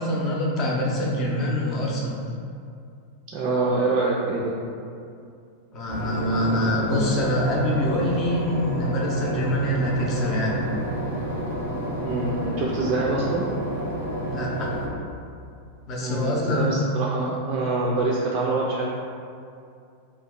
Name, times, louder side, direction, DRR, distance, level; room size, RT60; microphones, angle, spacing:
voice 1, 0.0-2.2 5.7-10.6 14.3-14.7 15.9-16.7, equal, 30° left, -3 dB, 0.6 m, -25 dB
voice 2, 3.3-4.5 12.0-13.5 16.0-18.9, right 3 dB, 35° right, -4 dB, 0.3 m, -25 dB
Boat Water vehicle / Engine, 5.9-14.8, equal, 75° left, 0.7 m, -30 dB
2.7 x 2.2 x 3.6 m, 2.4 s
figure-of-eight pair, 90°, 0 cm